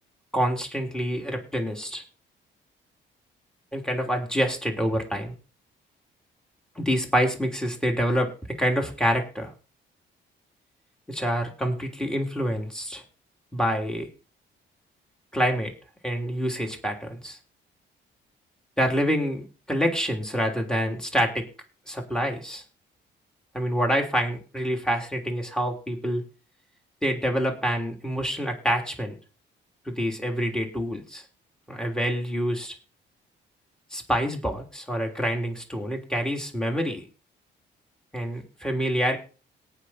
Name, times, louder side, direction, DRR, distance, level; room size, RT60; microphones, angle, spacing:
voice 1, 0.3-2.0 3.7-5.3 6.7-8.3 8.6-9.5 11.1-13.0 13.5-14.1 15.3-15.7 16.0-17.4 18.8-21.4 21.9-22.6 23.5-26.2 27.0-29.2 29.8-31.2 31.7-32.7 33.9-37.0 38.1-39.2, equal, 5° left, 2 dB, 3.3 m, -27 dB
18.0 x 6.1 x 4.3 m, 0.35 s
cardioid pair, 90°, 20 cm